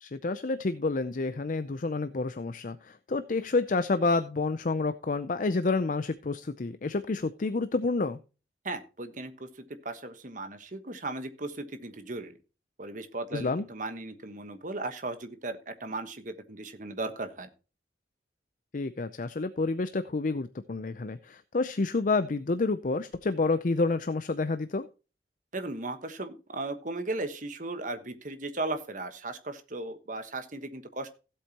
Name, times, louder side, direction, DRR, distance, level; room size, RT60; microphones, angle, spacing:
voice 1, 0.0-8.2 13.3-13.7 18.7-24.9, left 3 dB, 45° left, 12 dB, 0.5 m, -29 dB
voice 2, 8.6-12.4 12.8-17.5 25.5-31.2, right 2 dB, 45° right, 8 dB, 1.3 m, -36 dB
16.0 x 8.0 x 2.9 m, 0.33 s
head